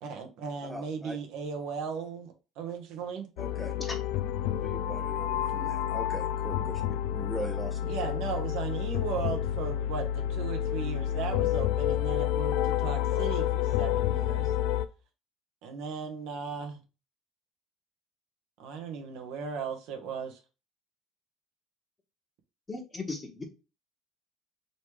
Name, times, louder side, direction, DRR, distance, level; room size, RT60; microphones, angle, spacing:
voice 1, 0.0-3.3 7.9-14.5 15.6-16.8 18.6-20.4, right 6 dB, 75° right, 1.1 m, -37 dB
voice 2, 0.6-1.2 3.4-3.7 4.6-6.8 7.1-8.1, right 1 dB, ahead, 0.6 m, -40 dB
sound 1, 3.4-14.9, left 11 dB, 85° left, 0.4 m, -29 dB
voice 3, 22.7-23.4, left 3 dB, 20° left, 1.3 m, -37 dB
4.0 x 3.2 x 3.3 m
supercardioid pair, 105°, 0 cm